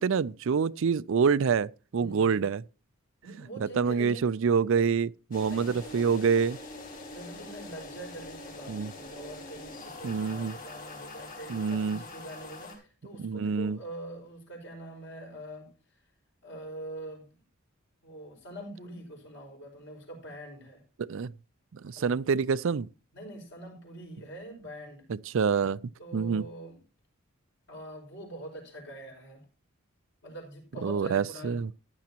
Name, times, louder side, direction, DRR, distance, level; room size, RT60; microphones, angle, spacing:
voice 1, 0.0-2.6 3.8-6.6 8.7-8.9 10.0-10.5 11.5-12.0 13.2-13.8 21.0-21.3 21.8-22.9 25.3-25.8 26.1-26.5 30.8-31.7, right 6 dB, 65° right, 0.4 m, -26 dB
voice 2, 2.0-2.5 3.2-4.2 4.8-5.0 5.5-5.8 7.1-15.7 16.4-17.4 18.0-20.8 21.9-22.2 23.1-25.0 26.0-26.8 27.7-29.5 30.2-31.7, right 1 dB, 55° left, 5.3 m, -44 dB
sound 1, 5.3-12.7, left 2 dB, 40° left, 4.3 m, -44 dB
15.0 x 10.5 x 2.9 m
head